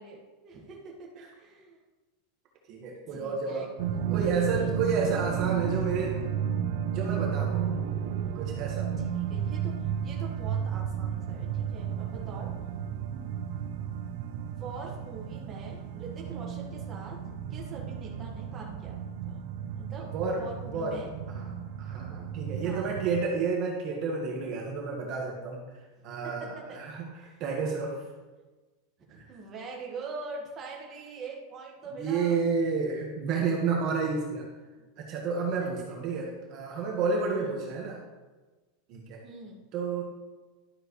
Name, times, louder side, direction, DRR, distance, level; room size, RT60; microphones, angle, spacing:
voice 1, 0.0-1.8 3.1-4.7 9.0-12.5 14.5-17.2 17.5-19.4 19.7-21.1 22.6-23.2 26.0-26.8 27.2-27.4 29.1-32.4 34.8-34.9 35.6-36.3 37.2-37.7 39.2-39.6, right 4 dB, 20° right, -2 dB, 1.7 m, -44 dB
voice 2, 2.7-3.6 4.1-6.2 6.9-7.6 8.3-8.9 13.1-13.2 20.1-20.4 20.7-21.0 21.3-21.5 21.8-25.6 26.0-27.9 32.0-34.4 35.0-38.0 38.9-39.2 39.7-40.0, right 4 dB, 40° right, -2 dB, 1.5 m, -30 dB
sound 1, 3.8-23.3, right 8 dB, 55° right, 0.6 m, -33 dB
12.0 x 7.8 x 3.2 m, 1.2 s
supercardioid pair, 165°, 0 cm